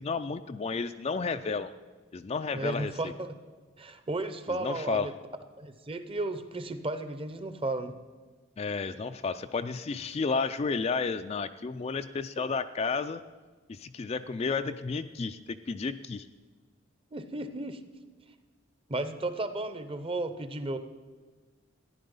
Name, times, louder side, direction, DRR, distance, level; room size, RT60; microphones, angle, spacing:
voice 1, 0.0-1.7 2.1-3.1 4.5-5.1 8.6-13.2 13.7-16.3, left 4 dB, 30° left, 10 dB, 0.3 m, -32 dB
voice 2, 2.5-3.3 3.8-5.1 5.6-7.9 17.1-17.8 18.9-20.8, right 2 dB, 25° right, 11 dB, 0.7 m, -34 dB
14.5 x 10.5 x 5.4 m, 1.4 s
head